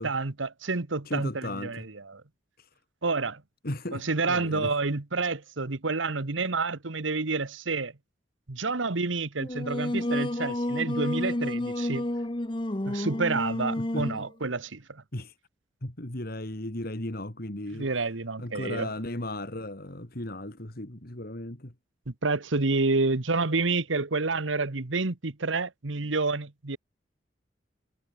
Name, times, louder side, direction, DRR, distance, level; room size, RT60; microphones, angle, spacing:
voice 1, 0.0-2.2 3.0-3.4 3.9-7.9 8.5-12.1 12.9-15.0 17.7-18.9 22.1-26.8, right 3 dB, 85° right, 1.4 m, -29 dB
voice 2, 1.0-1.9 2.6-2.7 3.6-4.7 13.8-14.1 15.1-15.4 15.8-17.9 18.4-21.7, left 1 dB, 50° left, 2.8 m, -36 dB
Singing, 9.4-14.3, left 1 dB, 25° left, 1.1 m, -30 dB
head